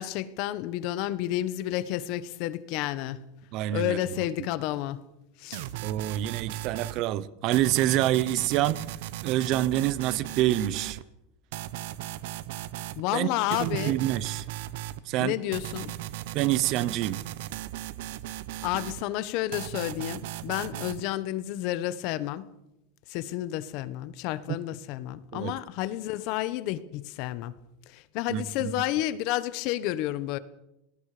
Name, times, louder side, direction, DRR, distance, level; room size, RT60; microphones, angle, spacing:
voice 1, 0.0-3.2 3.7-5.1 5.4-5.7 12.9-14.0 15.2-15.9 18.6-22.5 23.1-27.5 27.9-30.4, left 14 dB, 50° left, 1.2 m, -31 dB
voice 2, 3.5-4.0 5.8-8.9 9.2-11.0 13.1-13.3 13.6-14.4 15.0-15.4 16.3-17.2 25.3-25.6 28.3-28.7, right 14 dB, 45° right, 0.9 m, -27 dB
sound 1, 5.5-7.0 7.5-11.0 11.5-13.0 13.5-15.0 15.5-19.0 19.5-21.0, right 14 dB, 70° right, 1.1 m, -37 dB
27.5 x 20.0 x 5.1 m
supercardioid pair, 155°, 0 cm